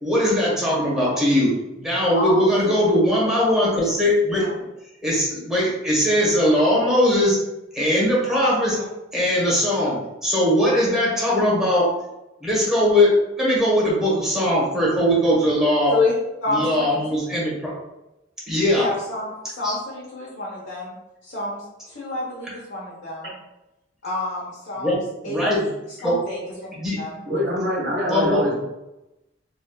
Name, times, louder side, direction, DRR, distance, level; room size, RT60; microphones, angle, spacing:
voice 1, 0.0-1.5 1.8-4.4 5.0-7.4 7.7-8.8 9.1-11.9 12.4-15.9 16.5-17.7 18.5-18.9 19.6-19.7 24.8-25.0 25.2-25.7 26.0-26.1 26.7-27.0 28.1-28.4, left 1 dB, 5° right, -7 dB, 1.3 m, -20 dB
voice 2, 2.1-2.7 4.4-4.5 8.6-8.9 15.9-16.1 16.4-17.0 18.7-20.9 21.2-23.4 24.0-26.0 26.3-26.7 27.0-27.2, left 2 dB, 65° left, -7 dB, 0.9 m, -29 dB
voice 3, 27.2-28.6, equal, 75° right, -7 dB, 1.4 m, -24 dB
4.2 x 2.6 x 2.3 m, 0.95 s
head